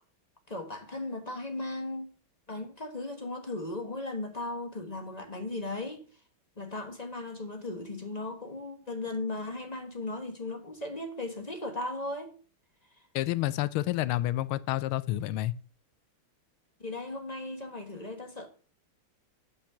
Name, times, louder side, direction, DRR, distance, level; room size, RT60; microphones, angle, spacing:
voice 1, 0.5-2.1 2.5-6.0 6.6-12.3 16.8-18.5, left 2 dB, 25° left, 1.2 m, -37 dB
voice 2, 13.1-15.5, left 15 dB, 90° left, 1.5 m, -29 dB
8.6 x 5.6 x 7.1 m
omnidirectional pair, 2.3 m